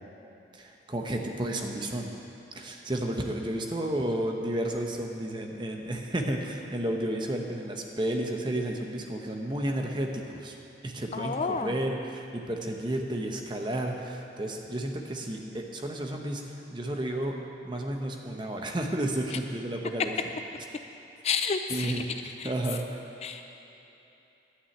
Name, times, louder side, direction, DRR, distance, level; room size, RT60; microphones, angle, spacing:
voice 1, 0.5-2.1 2.5-10.5 10.8-17.4 17.6-20.1 21.7-23.0, right 1 dB, 25° right, 2 dB, 0.9 m, -32 dB
voice 2, 11.1-11.7 21.2-22.0 22.4-22.5 23.2-23.5, left 5 dB, 35° left, 7 dB, 0.3 m, -30 dB
11.5 x 6.4 x 8.5 m, 3.0 s
head